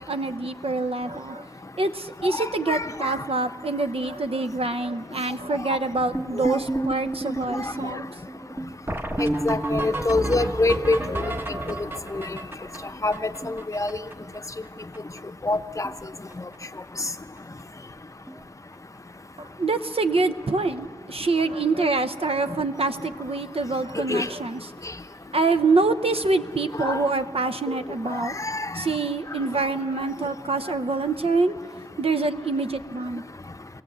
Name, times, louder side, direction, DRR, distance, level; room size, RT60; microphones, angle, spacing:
voice 1, 0.0-1.5 1.8-8.0 19.4-24.6 25.3-28.3 28.7-31.6 32.0-33.2, right 3 dB, 55° right, 10 dB, 0.8 m, -25 dB
voice 2, 2.3-3.2 6.4-6.6 7.6-7.7 9.2-11.3 12.1-12.4 13.0-13.9 15.4-15.9 16.4-16.5 24.1-24.3 26.8-27.0 28.2-28.8, left 2 dB, 30° left, 9 dB, 0.7 m, -26 dB
sound 1, 6.1-14.4 14.6-14.7 14.9-15.2 15.5-16.0 16.3-16.6 17.4-17.5 17.9-18.0 18.3-18.4 20.7-20.8 23.1-23.2, right 1 dB, 20° right, 1.2 m, -31 dB
21.0 x 17.0 x 8.0 m, 2.2 s
wide cardioid pair, 50°, 11 cm